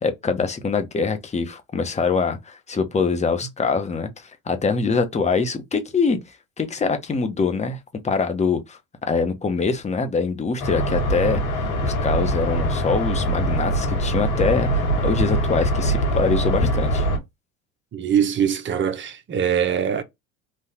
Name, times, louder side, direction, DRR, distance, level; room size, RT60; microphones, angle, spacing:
voice 1, 0.0-6.2 6.6-7.8 8.0-8.8 9.1-17.1, left 4 dB, 20° left, 1.0 m, -24 dB
sound 1, 10.6-17.2, right 1 dB, 90° left, 1.8 m, -23 dB
voice 2, 17.9-20.0, right 8 dB, 35° right, 0.9 m, -22 dB
3.9 x 2.5 x 4.4 m
supercardioid pair, 95°, 34 cm